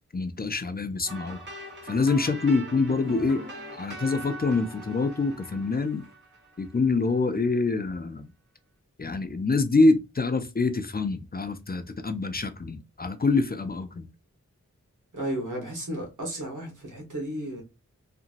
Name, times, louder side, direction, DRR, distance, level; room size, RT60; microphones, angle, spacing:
voice 1, 0.1-1.4 1.8-3.4 3.7-6.0 6.6-8.3 9.0-14.1, left 3 dB, 30° left, 0.4 m, -25 dB
sound 1, 1.1-7.0, right 2 dB, 35° right, 1.3 m, -41 dB
voice 2, 15.1-17.6, right 1 dB, 90° right, 1.3 m, -33 dB
2.9 x 2.6 x 2.5 m
wide cardioid pair, 65°, 30 cm